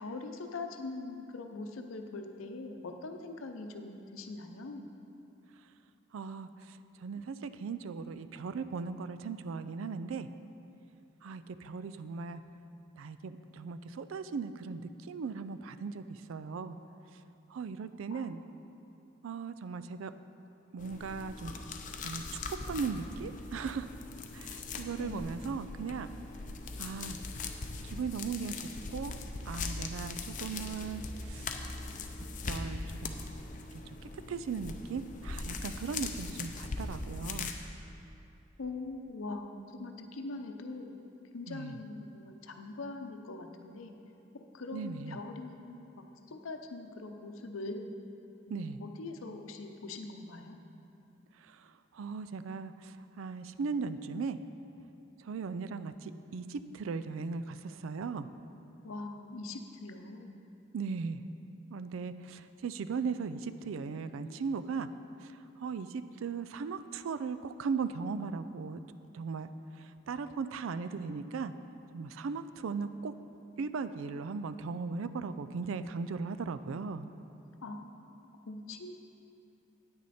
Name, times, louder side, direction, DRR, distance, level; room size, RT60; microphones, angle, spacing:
voice 1, 0.0-4.9 18.1-18.3 25.0-25.6 38.6-40.9 41.3-43.9 44.3-47.9 48.5-50.8 58.8-60.4 77.6-78.9, left 3 dB, 85° left, 5 dB, 0.7 m, -42 dB
voice 2, 6.1-10.3 11.2-12.4 13.0-16.8 17.5-18.4 19.2-20.1 20.7-21.5 22.0-23.9 24.3-26.1 26.8-27.2 27.8-29.2 29.5-31.5 32.5-33.2 33.7-37.5 41.5-41.8 44.7-45.2 48.5-48.8 51.4-54.4 55.2-58.3 60.7-61.2 61.7-64.9 65.2-68.8 69.1-71.5 71.9-73.1 73.6-77.1, right 5 dB, 75° right, 12 dB, 0.4 m, -38 dB
sound 1, 20.8-37.5, left 3 dB, 40° left, 0.5 m, -40 dB
9.3 x 8.9 x 4.2 m, 2.8 s
head